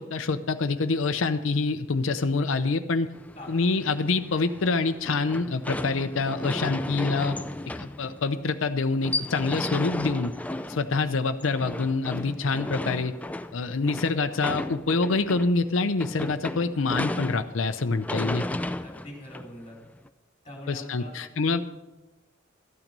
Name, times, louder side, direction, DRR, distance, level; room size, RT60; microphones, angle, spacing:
voice 1, 0.0-3.1 3.5-7.4 7.8-10.3 10.7-13.1 13.5-18.4 20.7-21.6, left 3 dB, 75° left, 9 dB, 0.6 m, -26 dB
sound 1, 3.1-20.1, left 1 dB, 5° left, 0.3 m, -35 dB
voice 2, 18.2-19.8 20.4-21.6, equal, 25° left, -2 dB, 4.2 m, -44 dB
13.5 x 9.0 x 5.3 m, 1.1 s
head